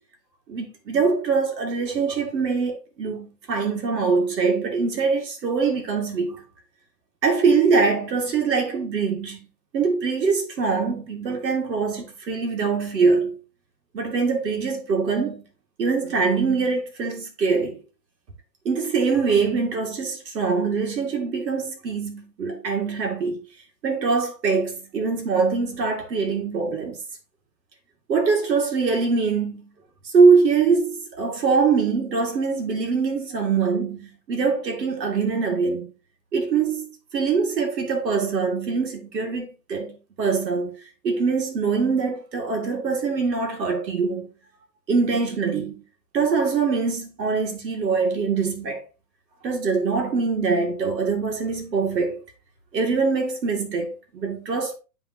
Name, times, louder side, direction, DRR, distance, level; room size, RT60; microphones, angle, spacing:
voice 1, 0.5-6.4 7.2-9.4 9.7-13.4 13.9-15.4 15.8-17.8 18.7-23.4 23.8-27.0 28.1-29.7 30.1-35.9 36.3-40.8 41.0-44.3 44.9-45.8 46.1-48.8 49.4-52.2 52.7-54.7, right 4 dB, 75° right, 2.3 m, -23 dB
9.9 x 3.7 x 2.9 m
hypercardioid pair, 140°, 50 cm